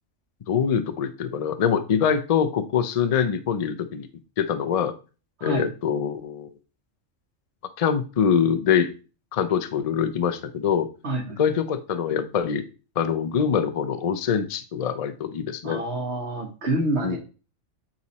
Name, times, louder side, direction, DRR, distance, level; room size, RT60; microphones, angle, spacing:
voice 1, 0.5-4.1 4.4-4.9 5.4-6.5 7.8-8.9 9.3-10.9 11.4-12.6 13.0-15.8 17.0-17.2, left 7 dB, 45° left, 11 dB, 0.5 m, -24 dB
voice 2, 11.0-11.4 15.6-17.2, right 1 dB, 55° right, -2 dB, 1.6 m, -27 dB
8.7 x 3.1 x 4.1 m, 0.34 s
omnidirectional pair, 1.4 m